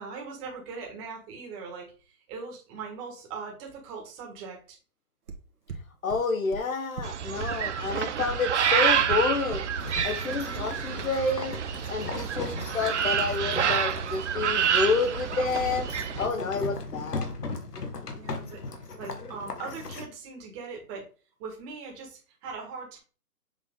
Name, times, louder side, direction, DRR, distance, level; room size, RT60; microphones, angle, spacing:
voice 1, 0.0-4.8 10.3-10.7 16.3-16.7 18.1-18.6 19.0-21.1 21.4-23.0, right 4 dB, 15° right, 1.5 m, -40 dB
sound 1, 5.3-5.4 5.7-5.8 6.1-6.2 6.5-6.6 7.0-7.1 7.4-7.5 7.8-7.9 8.3-8.4 8.7-8.8 9.1-9.2 9.5-9.6 9.9-10.0, right 5 dB, 70° right, 1.5 m, -36 dB
voice 2, 6.0-9.7 10.0-11.6 11.9-15.9 16.2-17.3, left 4 dB, 60° left, 1.4 m, -29 dB
sound 2, 7.0-16.3, right 8 dB, 50° right, 0.7 m, -28 dB
sound 3, 9.8-20.1, left 3 dB, 85° left, 1.6 m, -38 dB
7.2 x 3.9 x 3.7 m
hypercardioid pair, 160°, 46 cm